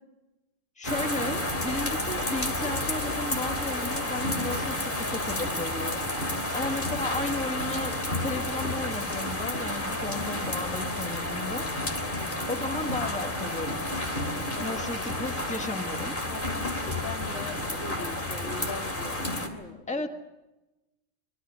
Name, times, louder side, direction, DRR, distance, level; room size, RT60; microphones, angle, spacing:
sound 1, 0.8-19.5, left 1 dB, 40° left, 3.1 m, -31 dB
voice 1, 0.8-11.7 12.5-13.9 14.6-16.2 19.9-20.1, left 2 dB, 5° left, 5 dB, 1.6 m, -34 dB
voice 2, 9.9-10.2 12.0-12.3 14.5-14.8 16.3-20.1, left 3 dB, 70° left, 2 dB, 3.0 m, -42 dB
24.5 x 23.0 x 6.4 m, 1.0 s
omnidirectional pair, 1.3 m